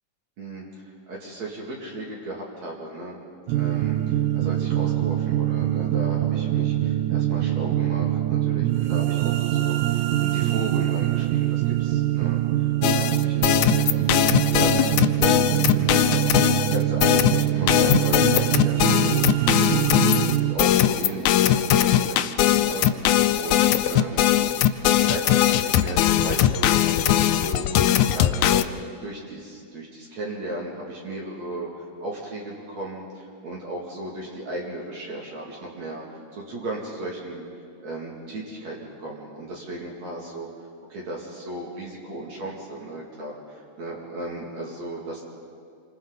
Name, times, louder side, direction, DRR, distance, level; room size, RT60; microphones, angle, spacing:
voice 1, 0.4-3.2 3.5-19.8 20.2-24.5 25.0-37.5 37.8-45.2, right 1 dB, 60° right, -3 dB, 3.5 m, -35 dB
sound 1, 3.5-20.6, right 13 dB, 90° right, 2.5 m, -24 dB
sound 2, 12.8-28.6, left 12 dB, 75° left, 1.9 m, -20 dB
28.0 x 25.0 x 4.0 m, 2.3 s
omnidirectional pair, 3.7 m